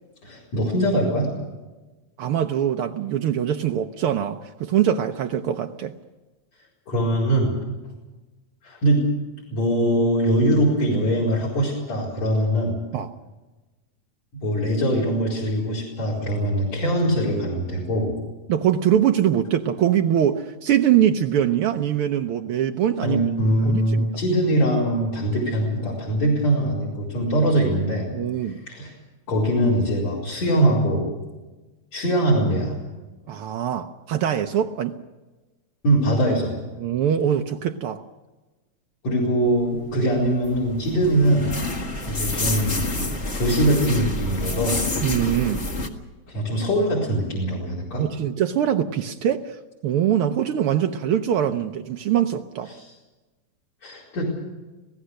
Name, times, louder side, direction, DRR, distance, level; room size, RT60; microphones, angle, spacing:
voice 1, 0.2-1.3 6.9-7.5 8.6-9.1 9.5-12.8 14.4-18.1 23.0-28.1 28.7-28.9 29.3-31.1 31.9-32.8 35.8-36.6 39.0-41.5 42.1-42.8 43.3-44.8 46.3-48.1 52.7-52.9 53.8-54.3, right 1 dB, 55° left, -1 dB, 5.7 m, -22 dB
voice 2, 2.2-5.9 12.9-13.1 18.5-23.2 23.6-24.1 28.1-28.6 33.3-35.0 36.8-38.0 45.0-45.6 48.0-52.7, right 10 dB, 85° right, 5 dB, 1.2 m, -23 dB
sound 1, 40.0-45.9, left 2 dB, 30° left, 1.5 m, -28 dB
26.5 x 17.5 x 6.5 m, 1.2 s
omnidirectional pair, 3.6 m